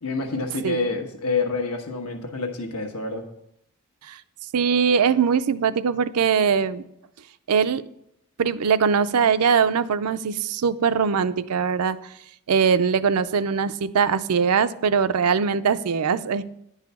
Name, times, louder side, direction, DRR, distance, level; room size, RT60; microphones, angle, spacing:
voice 1, 0.0-3.2, left 3 dB, 90° left, 4 dB, 1.2 m, -27 dB
voice 2, 4.5-6.8 7.5-7.8 8.4-12.0 12.5-16.4, right 6 dB, 90° right, 13 dB, 0.5 m, -21 dB
10.5 x 4.9 x 6.8 m, 0.77 s
head